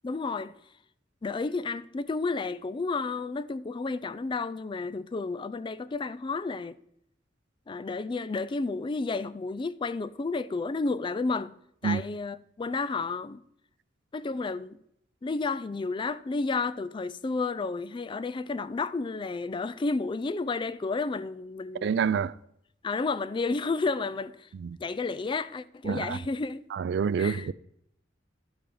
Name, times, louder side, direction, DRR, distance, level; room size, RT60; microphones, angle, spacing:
voice 1, 0.0-0.5 1.2-6.8 7.7-11.6 11.8-13.4 14.1-14.8 15.2-22.3 22.8-24.5 24.8-26.6 27.2-27.5, left 3 dB, 25° left, 0.3 m, -31 dB
voice 2, 21.8-22.3 24.5-24.8 25.8-26.2 26.7-27.5, right 6 dB, 65° right, 0.3 m, -27 dB
11.5 x 4.1 x 6.9 m
head